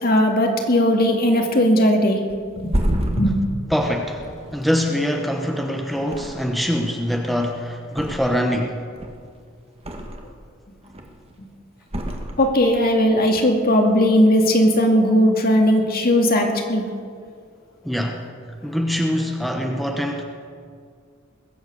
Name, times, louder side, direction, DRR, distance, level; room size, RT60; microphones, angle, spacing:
voice 1, 0.0-2.2 2.6-3.4 12.4-16.8, equal, 50° left, 2 dB, 2.2 m, -18 dB
Thump thud, 2.3-5.6 6.0-6.8 7.1-8.6 8.9-10.4 10.8-11.3 11.9-12.9 13.2-13.4, equal, 30° right, 1.7 m, -29 dB
voice 2, 3.7-4.3 4.5-8.9 17.8-18.2 18.6-20.2, equal, ahead, 2 dB, 1.0 m, -23 dB
21.0 x 8.1 x 8.0 m, 2.1 s
head